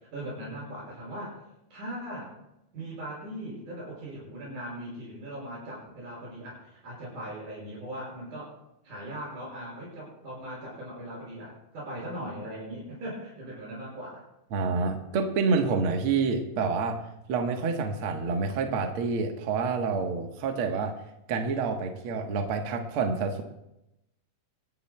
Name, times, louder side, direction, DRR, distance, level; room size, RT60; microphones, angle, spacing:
voice 1, 0.1-1.3 1.7-2.4 2.7-8.5 8.8-14.2, right 1 dB, 90° right, -5 dB, 7.0 m, -39 dB
voice 2, 14.5-17.0 17.3-20.9 21.3-23.4, right 4 dB, 55° right, 3 dB, 1.7 m, -28 dB
25.0 x 11.5 x 2.2 m, 0.87 s
omnidirectional pair, 3.5 m